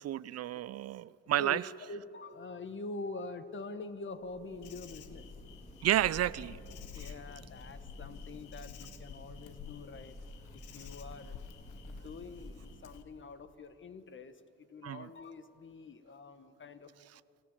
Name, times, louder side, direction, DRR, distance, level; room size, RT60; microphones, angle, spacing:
voice 1, 0.0-1.6 5.8-6.6 14.8-15.1, right 12 dB, 55° right, 20 dB, 0.4 m, -31 dB
voice 2, 1.4-5.3 6.9-10.1 10.5-11.4 11.8-16.9, left 3 dB, 40° left, 11 dB, 1.4 m, -45 dB
sound 1, 4.2-13.3, left 1 dB, 20° left, 3.1 m, -50 dB
Insect, 4.6-13.0, left 9 dB, 85° left, 1.3 m, -53 dB
27.0 x 14.0 x 7.4 m, 2.6 s
cardioid pair, 90°, 30 cm